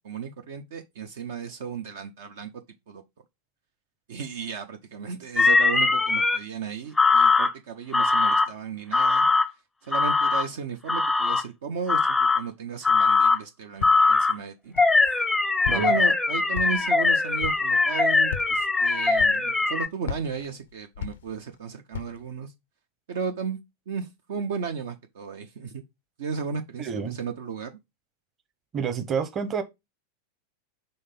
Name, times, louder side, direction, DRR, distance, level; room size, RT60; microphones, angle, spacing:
voice 1, 0.0-2.5 2.9-3.0 4.1-9.3 9.8-14.7 15.7-22.5 23.1-23.6 23.9-25.8 26.2-27.8, right 6 dB, 55° right, 0.6 m, -34 dB
sound 1, 5.4-6.4 7.0-7.5 7.9-8.5 8.9-9.5 9.9-10.5 10.9-11.4 11.9-12.4 12.8-13.4 13.8-14.3 14.8-19.9, left 3 dB, 10° left, 0.6 m, -21 dB
Walk footsteps, 13.8-14.2 14.8-15.3 15.6-16.1 16.5-17.0 17.4-17.7 18.2-18.7 19.2-19.7 20.0-21.6 21.9-22.3, left 8 dB, 60° left, 0.5 m, -37 dB
voice 2, 26.8-27.2 28.7-29.6, right 6 dB, 25° right, 1.0 m, -29 dB
5.5 x 3.4 x 5.2 m
figure-of-eight pair, 90°, 0 cm